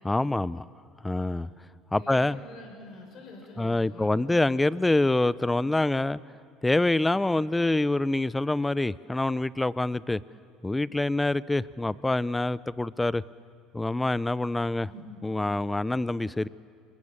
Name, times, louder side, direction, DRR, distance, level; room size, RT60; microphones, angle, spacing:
voice 1, 0.0-0.6 1.0-1.5 1.9-2.4 3.6-6.2 6.6-10.2 10.6-13.2 13.7-14.9 15.2-16.5, left 2 dB, 10° left, 19 dB, 0.7 m, -26 dB
voice 2, 2.0-4.2 14.9-15.1, left 2 dB, 50° left, 1 dB, 7.0 m, -46 dB
28.5 x 22.5 x 7.5 m, 2.3 s
hypercardioid pair, 70°, 0 cm